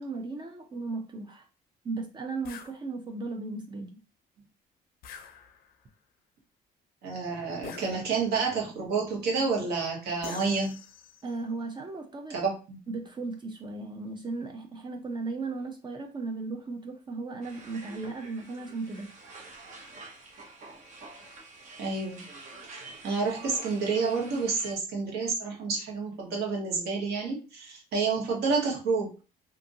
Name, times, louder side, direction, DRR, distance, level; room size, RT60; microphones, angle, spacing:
voice 1, 0.0-1.5 1.8-4.0 11.2-12.4 12.9-19.1, right 3 dB, 25° right, 4 dB, 0.4 m, -36 dB
sound 1, 2.4-2.8 5.0-5.8 7.6-8.4 10.2-11.3, left 7 dB, 60° left, 0.4 m, -45 dB
voice 2, 7.0-10.8 12.3-12.8 21.8-22.2 22.7-29.1, right 4 dB, 75° right, -1 dB, 1.2 m, -29 dB
sound 2, 17.4-24.7, right 3 dB, 45° right, 0.8 m, -47 dB
2.7 x 2.5 x 2.6 m, 0.34 s
cardioid pair, 110°, 17 cm